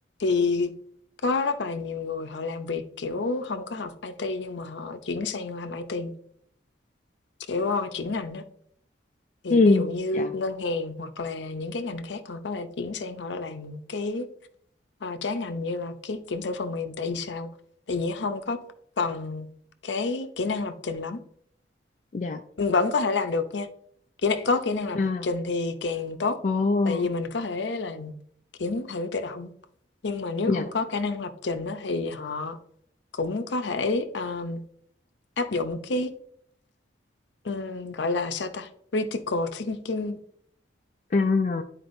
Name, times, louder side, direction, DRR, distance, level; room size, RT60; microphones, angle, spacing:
voice 1, 0.2-0.7 1.2-6.1 7.5-8.4 9.4-14.3 15.0-17.5 17.9-18.6 19.0-19.5 19.8-21.2 22.6-23.7 24.2-26.4 26.8-28.1 28.6-29.5 30.0-32.6 33.1-34.6 35.4-36.1 37.4-40.2, left 3 dB, 75° left, 0.6 m, -29 dB
voice 2, 9.5-9.9 10.2-10.3 22.1-22.4 25.0-25.2 26.4-27.1 30.5-30.6 41.1-41.6, left 3 dB, 40° left, 0.3 m, -22 dB
11.0 x 4.4 x 2.6 m
head